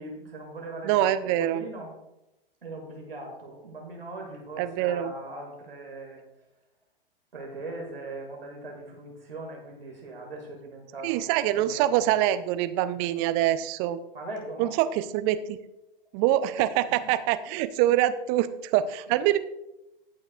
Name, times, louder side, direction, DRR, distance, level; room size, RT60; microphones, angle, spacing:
voice 1, 0.0-1.1 1.4-1.9 2.6-6.2 7.3-12.2 14.1-14.8 16.9-17.1, right 2 dB, 75° right, 0 dB, 2.0 m, -40 dB
voice 2, 0.8-1.6 4.6-5.1 11.0-14.0 14.6-15.6 16.1-19.4, right 13 dB, 30° right, 12 dB, 0.5 m, -25 dB
19.0 x 6.3 x 2.4 m, 0.90 s
figure-of-eight pair, 100°, 29 cm